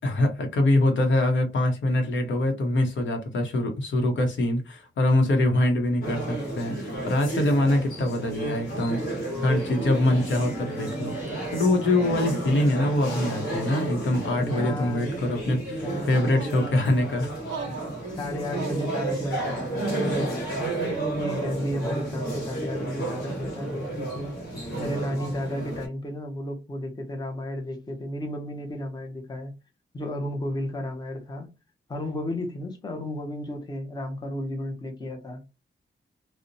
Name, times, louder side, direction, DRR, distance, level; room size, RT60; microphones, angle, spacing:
voice 1, 0.0-11.2 11.5-17.3, left 1 dB, 80° left, 0.8 m, -24 dB
sound 1, 6.0-25.9, right 2 dB, 50° left, 1.3 m, -32 dB
sound 2, 9.5-12.8, equal, 15° right, 1.0 m, -40 dB
voice 2, 14.4-15.4 15.8-16.7 18.2-20.7 21.2-24.3 24.8-29.5 29.9-31.5 31.9-35.4, left 1 dB, 20° left, 0.6 m, -33 dB
sound 3, 16.3-17.0 17.5-18.0 18.6-19.0, right 6 dB, 80° right, 0.4 m, -38 dB
2.8 x 2.0 x 2.5 m
wide cardioid pair, 165°, 19 cm